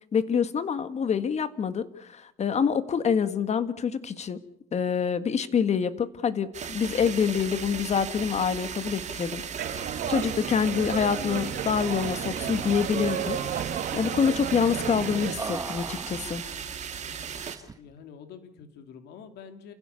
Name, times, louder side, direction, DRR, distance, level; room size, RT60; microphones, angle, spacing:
voice 1, 0.1-4.4 4.7-9.4 9.7-13.4 13.9-16.4, left 7 dB, 40° left, 12 dB, 1.7 m, -26 dB
sound 1, 6.5-17.6, right 7 dB, 45° right, 2.4 m, -37 dB
sound 2, 9.6-15.3, right 9 dB, 60° right, 2.2 m, -33 dB
sound 3, 12.0-12.2 12.5-12.7 13.0-13.8 15.4-16.6 17.3-17.9, right 4 dB, 20° right, 1.6 m, -39 dB
voice 2, 17.7-19.7, left 7 dB, 80° left, 7 dB, 3.0 m, -46 dB
29.0 x 16.0 x 7.0 m, 0.76 s
cardioid pair, 110°, 17 cm